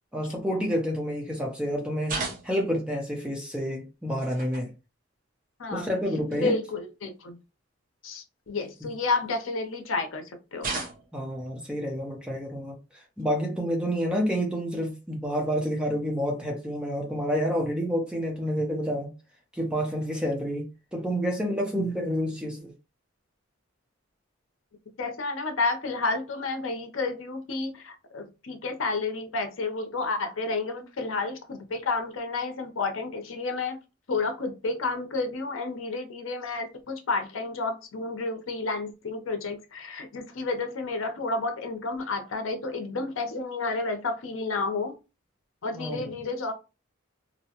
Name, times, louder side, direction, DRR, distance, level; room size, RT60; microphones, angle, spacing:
voice 1, 0.1-2.2 2.4-4.7 5.7-6.6 11.1-19.1 19.5-22.7 45.7-46.1, equal, 5° right, 0.5 m, -29 dB
sound 1, 2.0-2.8 4.1-4.7 5.7-5.8 6.3-6.4 8.6-9.4 10.6-11.3 13.0-13.2 14.8-14.9 16.1-16.2 17.4-17.7, right 3 dB, 45° right, 0.7 m, -36 dB
voice 2, 5.6-5.9 6.3-7.4 8.0-10.8 25.0-33.8 34.1-45.0 45.6-46.5, left 3 dB, 75° left, 0.6 m, -31 dB
2.6 x 2.1 x 2.8 m
head